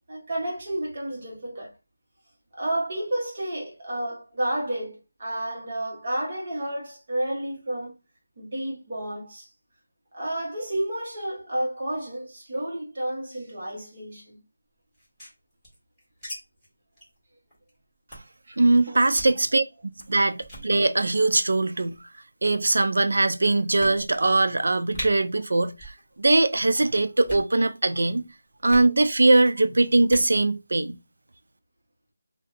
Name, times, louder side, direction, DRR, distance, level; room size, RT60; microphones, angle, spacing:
voice 1, 0.1-1.7 2.5-7.9 8.4-9.5 10.1-14.4 18.5-18.6 18.9-19.0 20.2-20.3, right 1 dB, 30° right, 1.0 m, -31 dB
sound 1, 14.9-16.4 16.6-16.7 17.0-17.2 17.5-17.7 18.1-18.4 19.0-19.4 20.0-20.1 20.4-20.7 21.6-22.0 22.7-22.8 23.2-23.3 23.8-24.3 24.6-24.7 24.9-25.1 25.7-26.0 26.3-26.7 27.1-27.5 28.7-28.9 30.0-30.3, equal, ahead, 1.5 m, -39 dB
voice 2, 18.6-19.6 20.1-22.0 22.4-28.2 28.6-31.0, right 2 dB, 60° right, 0.4 m, -21 dB
2.7 x 2.2 x 3.7 m
figure-of-eight pair, 175°, 0 cm